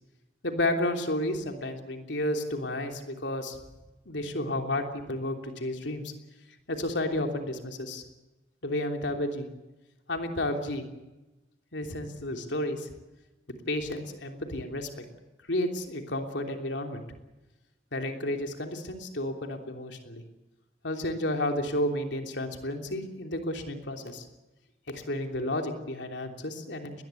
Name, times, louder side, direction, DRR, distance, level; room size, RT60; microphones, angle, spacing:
voice 1, 0.4-3.6 4.0-6.1 6.7-8.0 8.6-9.5 10.1-10.9 11.7-12.9 13.7-14.9 15.5-17.0 17.9-20.2 20.8-24.2 24.9-27.0, left 1 dB, 75° left, 4 dB, 3.2 m, -31 dB
21.0 x 20.0 x 8.4 m, 1.0 s
head